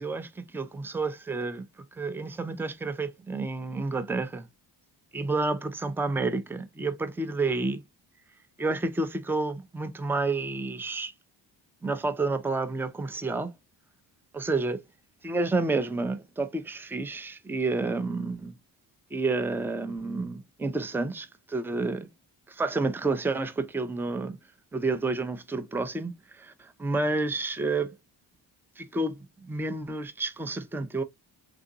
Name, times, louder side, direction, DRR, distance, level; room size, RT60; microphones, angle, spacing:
voice 1, 0.0-1.6 2.0-4.5 5.1-7.8 8.6-11.1 11.8-13.5 14.3-14.8 15.2-18.5 19.1-22.1 22.5-24.4 24.7-27.9 28.8-31.0, right 3 dB, 5° right, 0.4 m, -30 dB
3.7 x 2.5 x 2.7 m
cardioid pair, 85°, 46 cm